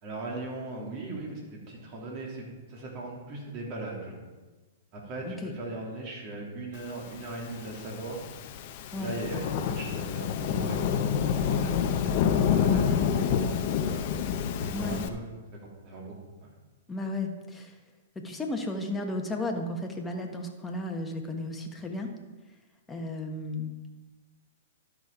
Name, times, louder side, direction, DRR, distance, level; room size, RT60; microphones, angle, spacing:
voice 1, 0.0-4.1 4.9-8.2 8.9-14.1 14.6-15.2 15.6-16.1 16.4-16.5, right 2 dB, 40° right, -2 dB, 3.3 m, -39 dB
Thunderstorm / Rain, 7.4-15.1, left 7 dB, 50° left, 0.8 m, -28 dB
voice 2, 16.9-17.7 18.2-22.1 22.9-23.7, left 2 dB, 10° left, 2 dB, 1.4 m, -34 dB
12.0 x 6.5 x 5.0 m, 1.2 s
hypercardioid pair, 115°, 0 cm